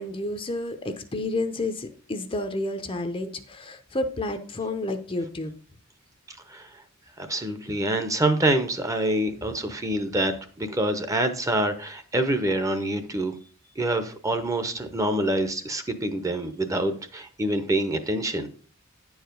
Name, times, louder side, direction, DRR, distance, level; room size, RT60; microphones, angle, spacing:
voice 1, 0.0-5.5, left 2 dB, 25° left, 8 dB, 0.7 m, -30 dB
voice 2, 6.3-6.8 7.2-13.3 13.8-18.5, right 1 dB, 15° right, 9 dB, 0.8 m, -26 dB
9.8 x 4.8 x 5.2 m, 0.42 s
head